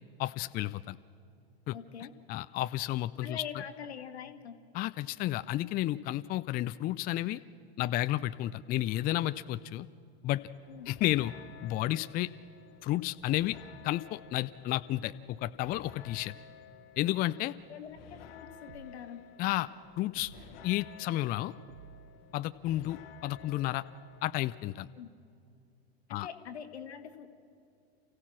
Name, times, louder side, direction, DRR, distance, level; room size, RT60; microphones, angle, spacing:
voice 1, 0.2-1.0 1.7-1.8 2.3-3.4 4.7-7.4 7.8-9.9 10.2-10.4 10.9-11.3 11.6-12.3 12.8-13.6 13.8-16.3 17.0-17.5 19.4-19.7 20.0-20.3 20.6-21.5 22.3-23.8 24.2-24.9 26.1-26.3, left 15 dB, 30° left, 13 dB, 0.4 m, -32 dB
voice 2, 1.7-2.1 3.2-4.6 10.7-10.9 17.7-19.2 25.0-25.1 26.1-27.3, left 8 dB, 75° left, 8 dB, 1.7 m, -44 dB
sound 1, 10.3-24.3, left 8 dB, 60° left, 1.3 m, -53 dB
sound 2, 18.7-19.3 20.1-20.7 21.7-22.3 23.2-23.8, right 8 dB, 70° right, 0.9 m, -55 dB
28.5 x 15.5 x 6.1 m, 2.5 s
figure-of-eight pair, 85°, 33 cm